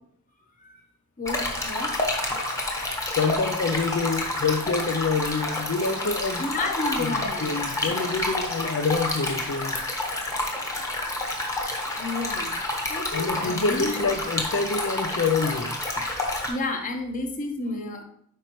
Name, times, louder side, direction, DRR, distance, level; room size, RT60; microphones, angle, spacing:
voice 1, 1.2-1.9 2.9-3.0 6.4-7.6 12.0-12.6 12.9-13.9 16.5-18.0, left 2 dB, 40° left, 4 dB, 1.0 m, -31 dB
Stream, 1.2-16.5, left 1 dB, 15° left, 1.1 m, -29 dB
voice 2, 3.1-6.4 7.0-9.9 13.1-15.8, left 4 dB, 60° left, 6 dB, 0.4 m, -27 dB
8.4 x 5.2 x 3.1 m, 0.69 s
head